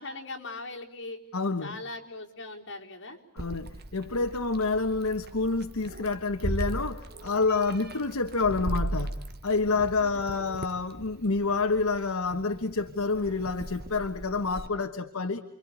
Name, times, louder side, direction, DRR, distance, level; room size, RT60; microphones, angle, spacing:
voice 1, 0.0-1.2 1.6-3.2 9.9-10.5, left 2 dB, 60° left, 4.3 m, -40 dB
voice 2, 1.3-1.8 3.4-15.4, left 3 dB, 75° left, 1.4 m, -28 dB
Meow, 3.4-14.7, right 1 dB, 50° right, 1.6 m, -38 dB
30.0 x 24.0 x 8.2 m
head